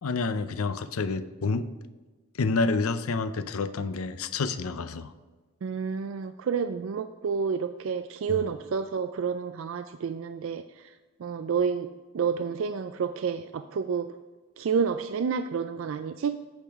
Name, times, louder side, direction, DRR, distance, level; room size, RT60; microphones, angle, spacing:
voice 1, 0.0-1.7 2.4-5.1 8.3-8.5, left 4 dB, 85° left, 12 dB, 0.6 m, -28 dB
voice 2, 5.6-10.6 11.2-11.9 12.1-14.1 14.6-16.4, right 6 dB, 65° right, 10 dB, 0.4 m, -29 dB
8.7 x 8.1 x 3.5 m, 1.3 s
head